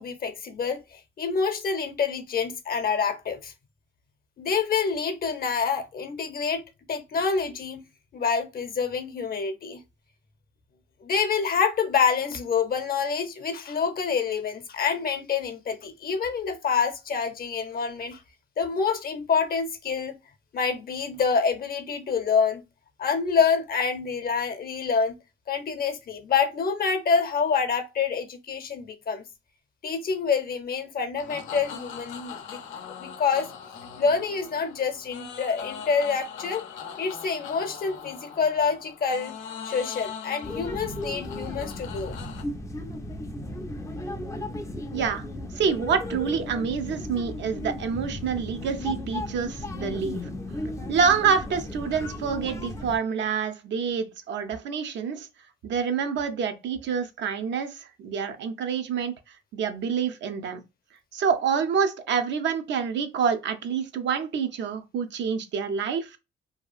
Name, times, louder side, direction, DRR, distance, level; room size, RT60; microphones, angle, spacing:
voice 1, 0.0-3.5 4.4-6.6 6.9-7.8 8.1-9.8 11.0-18.2 18.6-20.2 20.5-22.6 23.0-25.1 25.5-29.2 29.8-32.6 33.0-33.5 34.0-36.6 37.0-39.3 39.6-42.2, left 5 dB, 50° left, 0.7 m, -27 dB
sound 1, 31.2-42.4, left 7 dB, 90° left, 0.5 m, -41 dB
sound 2, 40.4-53.0, left 1 dB, 15° left, 0.4 m, -35 dB
voice 2, 44.9-45.2 45.5-50.3 50.9-55.3 55.6-59.1 59.5-60.6 61.1-66.2, right 6 dB, 65° right, 0.5 m, -27 dB
2.7 x 2.3 x 2.3 m
cardioid pair, 90°, 20 cm